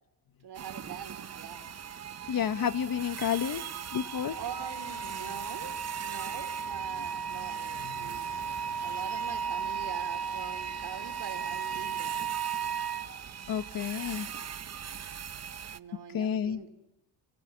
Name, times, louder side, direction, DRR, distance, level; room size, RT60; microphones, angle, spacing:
voice 1, 0.4-1.7 4.4-8.3 8.8-12.2 15.7-16.7, right 8 dB, 55° right, 6 dB, 4.0 m, -43 dB
sound 1, 0.5-15.8, right 8 dB, 35° right, 0.9 m, -41 dB
voice 2, 2.3-3.6 3.9-4.4 7.8-7.9 13.5-14.3 16.1-16.6, left 8 dB, 50° left, 13 dB, 1.1 m, -30 dB
Wind instrument woodwind instrument, 3.6-13.1, right 7 dB, ahead, 3.4 m, -36 dB
sound 2, 4.3-11.1, left 3 dB, 30° left, 4.6 m, -54 dB
29.5 x 27.0 x 7.2 m, 0.93 s
supercardioid pair, 75°, 46 cm